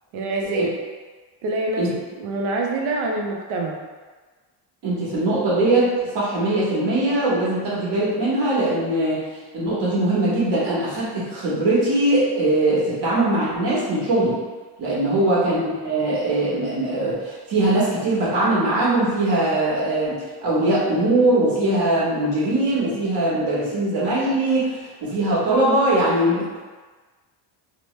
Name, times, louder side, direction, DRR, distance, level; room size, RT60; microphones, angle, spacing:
voice 1, 0.1-0.7 1.4-1.9 2.2-3.8 15.1-15.4, right 2 dB, 85° right, 0 dB, 0.6 m, -26 dB
voice 2, 4.8-9.3 9.5-14.4 14.8-26.6, right 1 dB, 60° right, -7 dB, 1.2 m, -21 dB
3.0 x 2.1 x 3.1 m, 1.4 s
cardioid pair, 120°, 46 cm